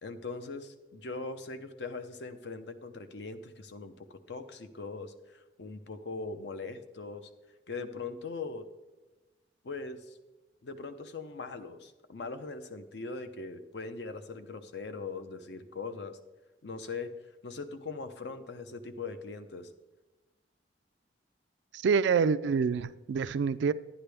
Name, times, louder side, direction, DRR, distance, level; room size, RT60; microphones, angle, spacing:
voice 1, 0.0-7.3 7.7-8.7 9.6-10.2 10.6-16.2 16.6-17.1 17.4-19.7, left 4 dB, 70° left, 9 dB, 0.7 m, -41 dB
voice 2, 21.7-23.7, right 5 dB, 80° right, 16 dB, 0.3 m, -27 dB
10.5 x 10.0 x 3.4 m, 1.1 s
head